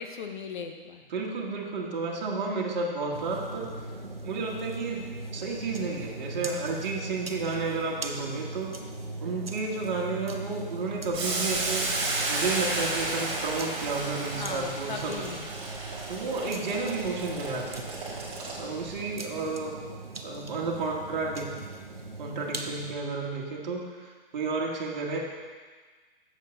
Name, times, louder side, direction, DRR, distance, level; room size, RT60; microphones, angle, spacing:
voice 1, 0.0-1.0 14.4-15.5, left 5 dB, 55° left, 5 dB, 0.9 m, -37 dB
voice 2, 1.1-3.7 4.2-5.0 5.3-8.8 9.2-11.9 12.3-15.3 16.1-17.9 18.6-19.8 20.2-21.5 22.2-25.2, right 4 dB, 50° right, -2 dB, 1.5 m, -32 dB
sound 1, 3.1-22.9, right 2 dB, 85° right, 0.8 m, -40 dB
Boiling, 11.1-18.9, right 2 dB, 20° right, 1.8 m, -33 dB
7.6 x 7.4 x 3.8 m, 1.4 s
figure-of-eight pair, 120°, 29 cm